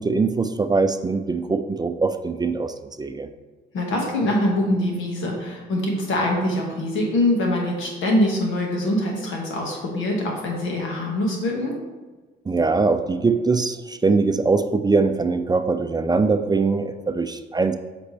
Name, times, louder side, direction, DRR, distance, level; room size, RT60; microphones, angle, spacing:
voice 1, 0.0-3.3 12.5-17.8, right 4 dB, 20° right, 8 dB, 0.4 m, -22 dB
voice 2, 3.7-11.7, left 1 dB, 80° left, -1 dB, 1.9 m, -23 dB
8.1 x 5.1 x 3.4 m, 1.3 s
cardioid pair, 90°, 20 cm